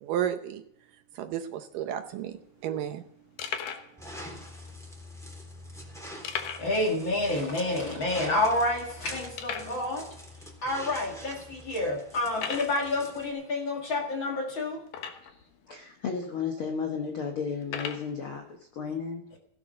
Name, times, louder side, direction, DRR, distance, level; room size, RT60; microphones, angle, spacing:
voice 1, 0.0-0.6 1.2-2.4 2.6-3.1, right 10 dB, 75° right, 8 dB, 2.2 m, -32 dB
sound 1, 1.9-2.4 2.9-3.0 3.4-3.9 4.7-4.8 6.2-6.8 7.1-7.2 7.7-7.8 8.3-8.4 9.4-9.8 10.6-10.7 11.3-11.4 12.3-12.8 14.9-15.4 16.2-16.3 17.6-18.1, left 7 dB, 65° left, 2.7 m, -36 dB
sound 2, 4.0-13.3, equal, ahead, 2.9 m, -45 dB
voice 2, 6.6-10.1 10.6-14.8, left 2 dB, 45° left, 2 dB, 1.9 m, -29 dB
voice 3, 15.7-19.4, left 6 dB, 85° left, 3 dB, 1.1 m, -33 dB
16.0 x 12.0 x 5.3 m, 0.73 s
omnidirectional pair, 4.4 m